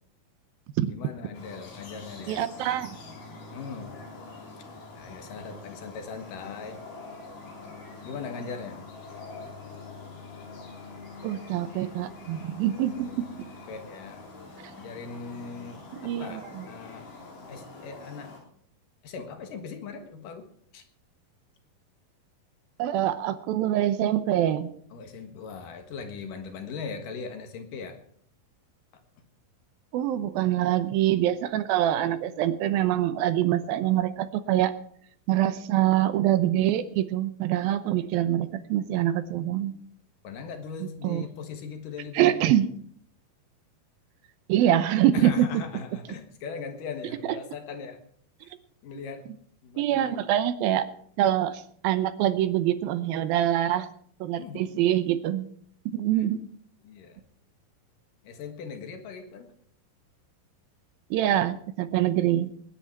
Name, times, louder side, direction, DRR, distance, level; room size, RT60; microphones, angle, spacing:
voice 1, 0.9-2.5 3.5-3.9 4.9-6.8 8.0-8.8 13.7-14.2 14.8-17.0 17.5-18.3 19.0-20.5 20.7-20.8 24.9-28.0 40.2-42.3 45.1-48.0 48.4-48.5 48.8-49.3 49.6-50.2 54.4-54.8 56.2-56.3 56.8-57.2 58.2-59.5, left 5 dB, 65° left, 7 dB, 3.0 m, -39 dB
sound 1, 1.3-18.4, left 3 dB, 90° left, 5.6 m, -45 dB
voice 2, 2.3-2.9 11.2-13.3 16.0-16.6 22.8-24.7 29.9-34.7 35.3-39.7 41.0-41.3 42.1-42.7 44.5-45.5 49.8-50.9 51.2-53.9 54.2-55.5 55.9-56.4 61.1-62.5, right 12 dB, 80° right, 11 dB, 2.6 m, -25 dB
20.0 x 10.0 x 4.6 m, 0.62 s
omnidirectional pair, 4.2 m